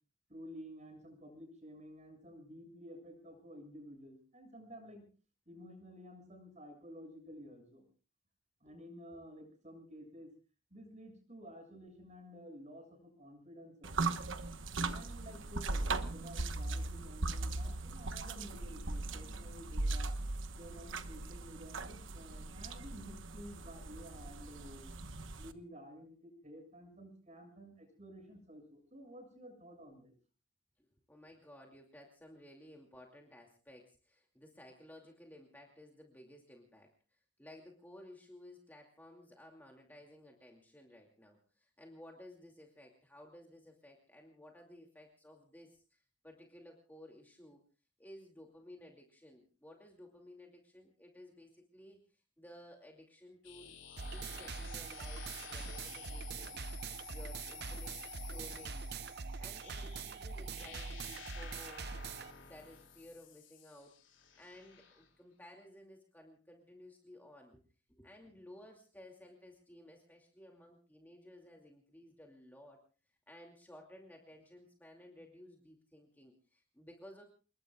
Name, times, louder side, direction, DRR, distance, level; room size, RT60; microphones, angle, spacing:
voice 1, 0.3-5.0 5.5-7.8 8.6-10.3 10.7-14.2 14.9-20.1 20.6-24.9 25.4-30.1, equal, 35° right, 5 dB, 7.2 m, -52 dB
sound 1, 13.8-25.5, right 3 dB, 70° right, 1.2 m, -39 dB
voice 2, 30.8-47.6 48.0-53.8 54.1-56.7 57.1-58.9 59.4-61.9 62.2-64.0 64.4-67.6 67.9-72.8 73.3-77.2, left 1 dB, 10° left, 1 dB, 2.6 m, -56 dB
sound 2, 53.4-65.1, left 9 dB, 65° left, 4.4 m, -53 dB
sound 3, 54.0-62.3, right 4 dB, 55° right, 0.8 m, -43 dB
29.0 x 20.5 x 2.4 m, 0.36 s
head